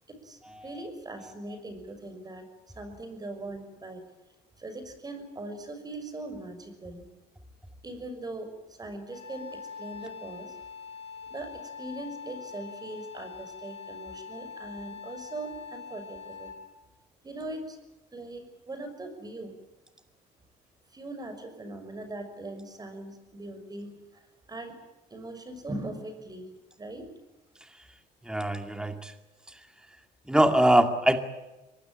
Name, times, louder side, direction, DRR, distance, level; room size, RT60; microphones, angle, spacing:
voice 1, 0.1-4.1 4.6-7.0 7.8-10.6 11.3-16.5 17.2-17.8 18.1-19.5 20.9-24.8 25.1-27.1, right 2 dB, 25° right, 9 dB, 6.1 m, -40 dB
Wind instrument woodwind instrument, 9.1-16.7, left 6 dB, 40° left, 7.4 m, -43 dB
voice 2, 28.3-29.1 30.3-31.2, right 1 dB, 5° right, 7 dB, 2.3 m, -22 dB
24.0 x 20.0 x 9.0 m, 1.0 s
cardioid pair, 110°, 17 cm